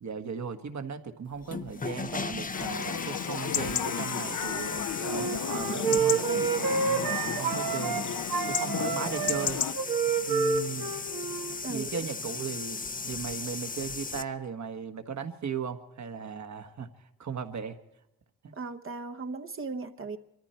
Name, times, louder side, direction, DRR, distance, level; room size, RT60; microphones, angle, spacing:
voice 1, 0.0-8.0 8.5-9.6 10.3-10.9 11.7-16.9 17.2-17.8 18.4-18.5, right 6 dB, 55° right, 7 dB, 1.6 m, -37 dB
sound 1, 1.3-14.2, left 4 dB, 25° left, 0.7 m, -37 dB
Chatter / Livestock farm animals working animals / Chirp tweet, 2.5-9.7, left 8 dB, 60° left, 0.9 m, -33 dB
Wind instrument woodwind instrument, 5.0-8.0 8.3-11.6, right 6 dB, 80° right, 1.7 m, -29 dB
voice 2, 11.6-12.1 18.5-20.2, right 3 dB, 35° right, 8 dB, 1.1 m, -37 dB
23.5 x 14.0 x 4.4 m, 0.85 s
cardioid pair, 85°, 35 cm